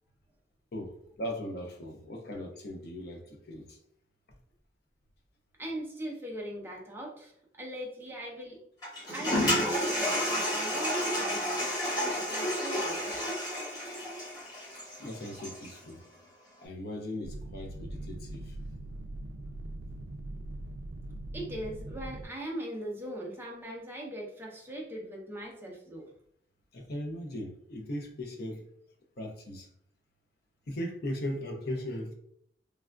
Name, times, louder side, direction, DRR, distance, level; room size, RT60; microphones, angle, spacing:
voice 1, 0.7-3.8 15.0-16.0 16.6-18.6 26.7-28.7 29.2-29.7 30.7-32.1, left 1 dB, 60° left, 2 dB, 0.6 m, -38 dB
voice 2, 5.6-7.3 7.6-8.6 9.1-13.3 21.3-26.1, right 1 dB, 15° right, -1 dB, 0.6 m, -40 dB
Toilet flush, 8.8-15.7, equal, 25° left, 1.1 m, -31 dB
sound 1, 17.2-22.3, right 1 dB, 80° right, 0.3 m, -41 dB
3.3 x 2.4 x 2.2 m, 0.68 s
head